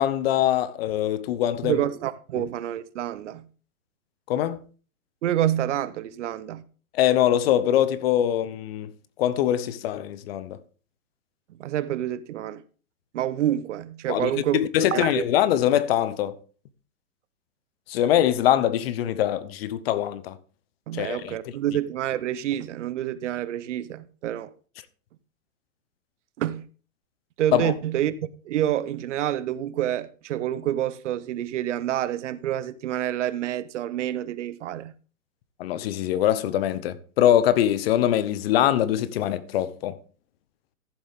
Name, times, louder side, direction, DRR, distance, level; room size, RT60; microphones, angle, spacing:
voice 1, 0.0-1.8 4.3-4.6 6.9-8.9 9.2-10.6 14.1-16.4 17.9-20.4 20.9-21.4 27.5-27.7 35.6-39.9, left 11 dB, 45° left, 0.9 m, -23 dB
voice 2, 1.6-3.5 5.2-6.6 11.5-12.6 13.1-14.6 14.9-15.2 20.9-24.5 26.4-26.7 27.4-34.9, right 12 dB, 55° right, 0.9 m, -28 dB
14.0 x 7.7 x 3.6 m
hypercardioid pair, 135°, 43 cm